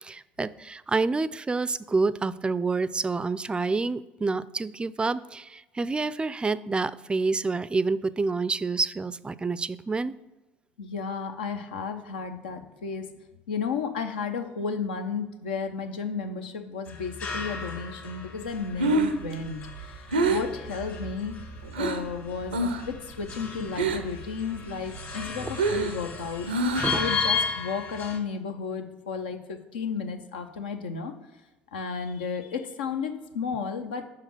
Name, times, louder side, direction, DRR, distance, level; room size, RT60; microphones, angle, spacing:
voice 1, 0.0-10.1 26.8-27.0, right 3 dB, 20° right, 17 dB, 0.3 m, -28 dB
voice 2, 10.8-13.1 13.5-21.4 21.8-26.5 26.9-31.1 31.7-34.0, left 5 dB, 80° left, 7 dB, 0.7 m, -33 dB
sound 1, 16.9-28.2, left 5 dB, 45° left, 2.1 m, -35 dB
Breathing, 18.5-22.1 22.5-23.0 23.2-24.2 24.6-27.1, right 2 dB, 90° right, 0.5 m, -27 dB
5.9 x 5.0 x 5.8 m, 1.1 s
hypercardioid pair, 60°, 5 cm